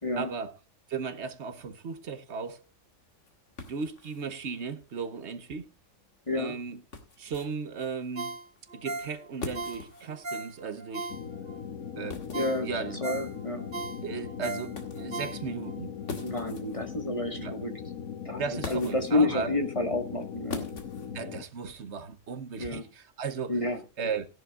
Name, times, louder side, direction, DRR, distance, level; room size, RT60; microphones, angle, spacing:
voice 1, 0.2-0.6 0.9-2.6 3.7-5.7 6.3-6.8 7.2-8.4 8.7-11.1 12.0-13.0 14.0-15.9 17.4-17.6 18.4-19.6 21.1-23.6 24.0-24.3, right 5 dB, 60° right, 1.2 m, -36 dB
sound 1, 2.2-21.8, left 4 dB, 65° left, 2.2 m, -46 dB
Ringtone, 8.2-11.6 12.0-12.1 12.3-15.8 16.2-16.3, right 2 dB, 35° right, 1.5 m, -38 dB
sound 2, 11.1-21.4, left 7 dB, 85° left, 1.2 m, -39 dB
voice 2, 12.3-13.7 16.2-17.7 18.2-18.4 18.7-20.7 22.6-22.9 23.5-23.8, left 2 dB, 25° left, 1.7 m, -30 dB
17.0 x 11.0 x 2.4 m
omnidirectional pair, 1.4 m